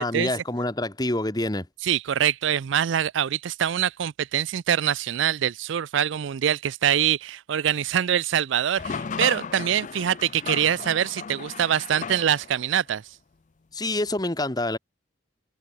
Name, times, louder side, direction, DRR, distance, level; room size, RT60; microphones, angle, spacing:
voice 1, 0.0-1.7 13.7-14.8, left 1 dB, 20° left, 1.5 m, -26 dB
voice 2, 1.9-13.0, right 9 dB, 70° right, 0.4 m, -24 dB
sound 1, 8.8-12.7, left 5 dB, 40° left, 0.5 m, -35 dB
head